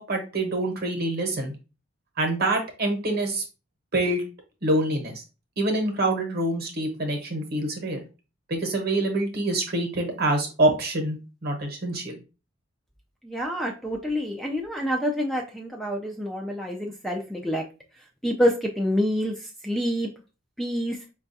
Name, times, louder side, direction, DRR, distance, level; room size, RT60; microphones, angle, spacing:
voice 1, 0.0-1.5 2.2-3.4 3.9-4.2 4.6-5.2 5.6-8.0 8.5-12.2, right 1 dB, 50° right, 4 dB, 0.9 m, -26 dB
voice 2, 13.2-17.6 18.2-19.3 19.6-20.1 20.6-21.0, equal, ahead, 1 dB, 0.3 m, -27 dB
4.8 x 2.3 x 2.6 m, 0.31 s
head